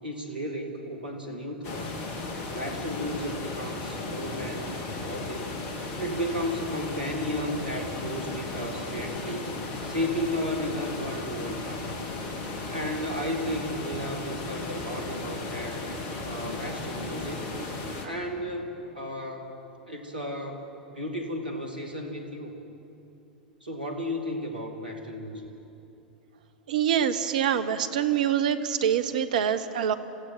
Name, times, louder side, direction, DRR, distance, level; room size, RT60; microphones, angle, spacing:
voice 1, 0.0-2.0 2.5-5.5 6.0-9.5 9.9-11.9 12.7-15.9 16.2-17.4 18.0-19.5 19.9-20.6 20.9-22.6 23.6-25.5, equal, 85° right, 4 dB, 2.3 m, -34 dB
sound 1, 1.6-18.1, left 3 dB, 45° left, 2.5 m, -35 dB
voice 2, 26.7-29.9, right 9 dB, 65° right, 11 dB, 1.0 m, -25 dB
27.0 x 16.0 x 6.1 m, 2.9 s
figure-of-eight pair, 85°, 5 cm